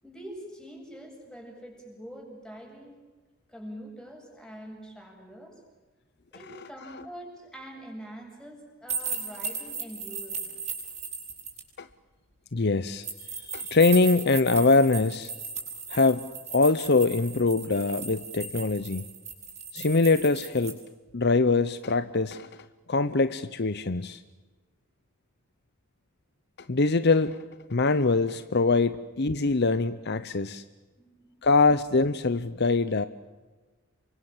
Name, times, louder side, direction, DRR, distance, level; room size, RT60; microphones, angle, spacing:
voice 1, 0.0-3.0 3.5-5.6 6.3-10.5 31.0-31.4, equal, 5° left, 1 dB, 7.7 m, -44 dB
sound 1, 8.9-11.6 13.0-20.7, right 5 dB, 30° right, 7.7 m, -36 dB
voice 2, 12.5-13.1 13.3-15.3 15.9-16.2 16.5-19.0 19.7-20.8 21.1-22.5 22.9-24.2 26.7-27.4 27.7-30.6 31.4-33.1, left 3 dB, 50° left, 13 dB, 0.8 m, -23 dB
29.0 x 24.5 x 7.4 m, 1.2 s
head